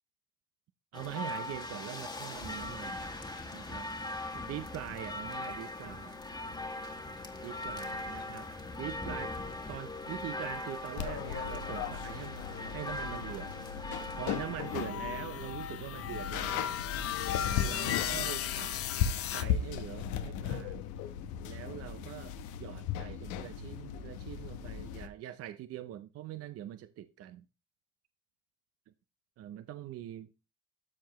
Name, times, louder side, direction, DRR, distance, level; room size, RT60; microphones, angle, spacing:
sound 1, 0.9-14.9, left 2 dB, 15° left, 1.5 m, -40 dB
voice 1, 0.9-3.0 3.5-3.9 4.3-6.1 7.4-8.5 8.8-9.3 9.7-12.4 12.7-13.5 14.1-16.8 17.6-18.8 19.3-20.8 21.4-27.4 29.4-30.3, right 12 dB, 55° right, 0.6 m, -43 dB
sound 2, 6.1-25.1, left 8 dB, 85° left, 1.0 m, -38 dB
sound 3, 14.7-19.4, left 10 dB, 50° left, 0.7 m, -36 dB
13.0 x 4.7 x 3.0 m
cardioid pair, 105°, 30 cm